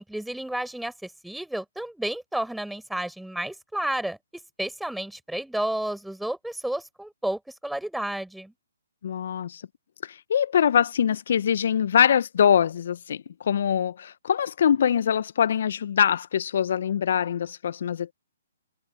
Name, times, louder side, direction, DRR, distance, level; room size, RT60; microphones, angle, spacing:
voice 1, 0.0-4.2 4.6-8.5, right 1 dB, ahead, 5.5 m, -31 dB
voice 2, 9.0-9.6 10.0-18.1, left 8 dB, 55° left, 0.9 m, -23 dB
figure-of-eight pair, 130°, 0 cm